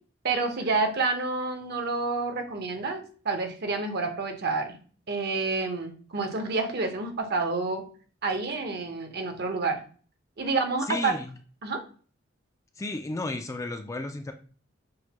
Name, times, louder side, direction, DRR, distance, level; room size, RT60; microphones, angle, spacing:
voice 1, 0.2-4.8 5.1-7.8 8.2-9.8 10.4-11.2 11.6-11.8, right 3 dB, 60° right, 5 dB, 0.8 m, -28 dB
voice 2, 10.9-11.2 12.8-14.3, left 2 dB, 15° left, 6 dB, 0.3 m, -33 dB
6.2 x 2.2 x 2.8 m, 0.40 s
head